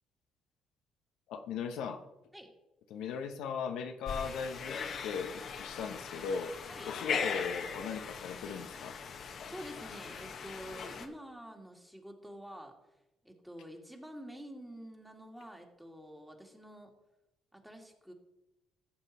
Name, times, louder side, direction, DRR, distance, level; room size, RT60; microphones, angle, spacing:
voice 1, 1.3-2.0 2.9-6.6 6.9-9.0, left 6 dB, 80° left, 6 dB, 0.9 m, -38 dB
sound 1, 4.1-11.1, left 6 dB, 60° left, 1.3 m, -39 dB
voice 2, 9.5-12.8 13.2-16.9 17.5-18.1, equal, 5° right, 2 dB, 2.3 m, -48 dB
14.5 x 7.3 x 4.2 m, 0.96 s
supercardioid pair, 75°, 0 cm